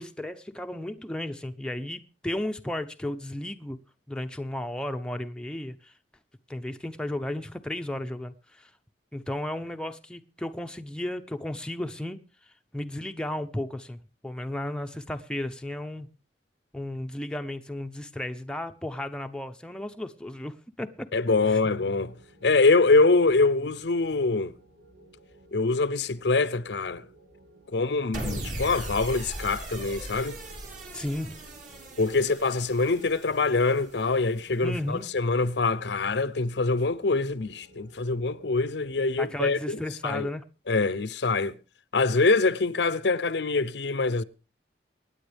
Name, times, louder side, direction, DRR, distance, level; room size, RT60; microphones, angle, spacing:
voice 1, 0.0-3.8 4.1-5.9 6.5-8.7 9.1-12.2 12.7-16.1 16.7-21.1 21.5-21.6 30.9-31.4 34.6-35.0 39.2-40.4, left 1 dB, 5° left, 0.7 m, -34 dB
voice 2, 21.1-22.1 22.4-24.5 25.5-27.0 27.7-30.4 32.0-40.3 40.7-41.6 41.9-44.2, left 3 dB, 70° left, 0.7 m, -24 dB
sound 1, 21.3-39.2, right 2 dB, 80° right, 3.3 m, -56 dB
sound 2, 28.1-34.5, right 1 dB, 45° right, 3.5 m, -39 dB
24.5 x 9.7 x 3.4 m
head